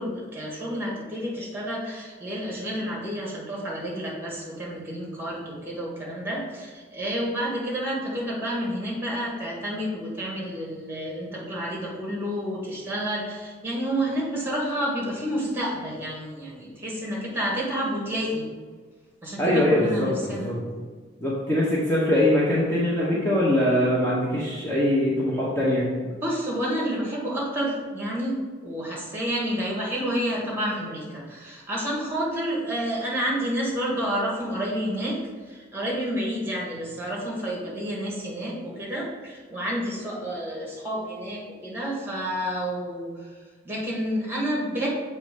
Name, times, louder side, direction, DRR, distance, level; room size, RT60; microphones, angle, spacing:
voice 1, 0.0-18.4 19.2-20.5 26.2-28.4 28.6-35.2 35.4-43.3 43.6-44.9, equal, 10° right, -4 dB, 1.5 m, -29 dB
voice 2, 19.4-20.6 21.2-25.9, left 1 dB, 10° left, -7 dB, 1.0 m, -22 dB
7.0 x 3.2 x 5.1 m, 1.4 s
head